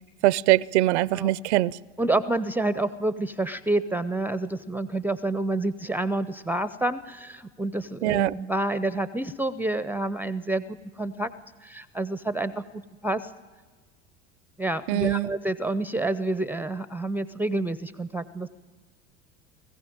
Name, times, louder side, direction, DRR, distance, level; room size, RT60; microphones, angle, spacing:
voice 1, 0.2-1.8 8.0-8.3 14.9-15.3, right 16 dB, 70° right, 0.5 m, -22 dB
voice 2, 2.0-11.3 11.6-13.3 14.6-18.5, right 2 dB, 5° right, 0.5 m, -28 dB
20.0 x 15.0 x 8.9 m
hypercardioid pair, 80°, 36 cm